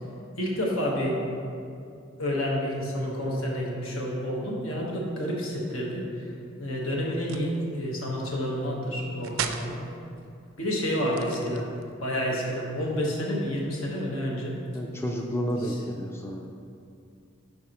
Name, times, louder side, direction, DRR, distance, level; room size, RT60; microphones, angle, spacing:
voice 1, 0.4-1.2 2.2-6.2 6.6-9.8 10.6-11.7 12.0-14.6 15.6-15.8, equal, 80° left, -3 dB, 1.3 m, -29 dB
sound 1, 7.1-7.6 9.2-9.7 11.0-11.9, right 8 dB, 70° right, 0.4 m, -35 dB
voice 2, 14.7-16.5, equal, 10° left, 0 dB, 0.3 m, -31 dB
10.0 x 4.1 x 3.0 m, 2.5 s
head